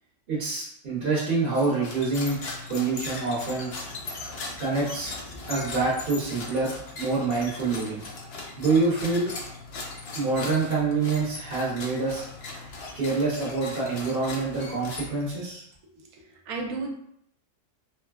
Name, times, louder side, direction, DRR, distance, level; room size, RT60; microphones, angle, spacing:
voice 1, 0.3-2.4 2.7-3.7 4.6-5.1 5.5-6.7 7.0-8.0 8.6-9.3 10.1-12.3 12.9-15.6, right 3 dB, 45° right, -8 dB, 0.9 m, -26 dB
sound 1, 1.5-15.5, left 3 dB, 80° left, 0.5 m, -39 dB
voice 2, 15.9-16.9, right 3 dB, 80° right, 1 dB, 1.1 m, -34 dB
3.2 x 2.1 x 2.3 m, 0.69 s
omnidirectional pair, 1.6 m